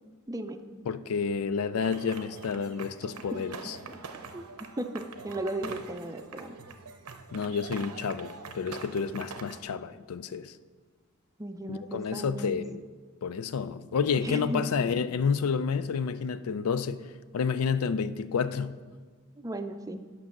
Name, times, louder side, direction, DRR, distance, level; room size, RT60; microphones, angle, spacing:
voice 1, 0.3-0.6 3.3-4.0 4.3-4.4 4.8-6.6 11.4-12.5 14.2-14.6 19.4-20.1, right 1 dB, 15° right, 0.5 m, -36 dB
voice 2, 0.9-3.8 7.3-10.5 11.7-12.8 13.2-17.1 17.3-18.8, left 6 dB, 80° left, 0.4 m, -30 dB
sound 1, 1.8-9.6, right 5 dB, 90° right, 0.7 m, -44 dB
9.9 x 6.0 x 6.0 m
head